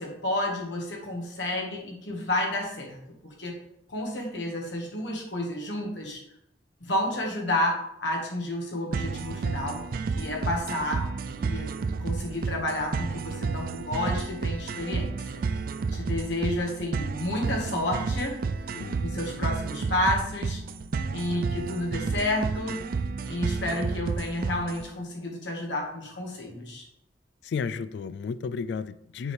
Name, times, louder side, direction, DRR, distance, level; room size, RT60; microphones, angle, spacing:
voice 1, 0.0-3.0 3.2-3.5 3.9-6.2 6.8-9.8 10.1-11.1 11.3-11.7 12.0-15.4 15.9-18.4 19.0-20.6 21.1-22.9 23.3-26.8, left 1 dB, 90° left, 0 dB, 1.6 m, -30 dB
sound 1, 8.9-24.9, right 4 dB, 55° right, 0.3 m, -31 dB
voice 2, 27.4-29.3, left 5 dB, 65° left, 15 dB, 0.3 m, -33 dB
6.8 x 4.6 x 3.4 m, 0.78 s
head